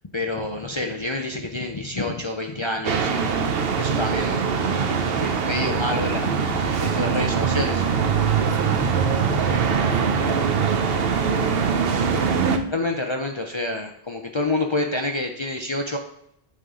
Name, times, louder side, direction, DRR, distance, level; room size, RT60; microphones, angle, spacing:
voice 1, 0.1-3.3 3.8-4.4 4.9-8.4 12.7-16.0, left 2 dB, 35° left, 2 dB, 0.6 m, -28 dB
sound 1, 2.8-12.6, right 6 dB, 70° right, 0.9 m, -22 dB
voice 2, 8.4-11.9, right 3 dB, 30° right, 4 dB, 0.7 m, -33 dB
8.3 x 5.7 x 3.7 m, 0.75 s
omnidirectional pair, 1.1 m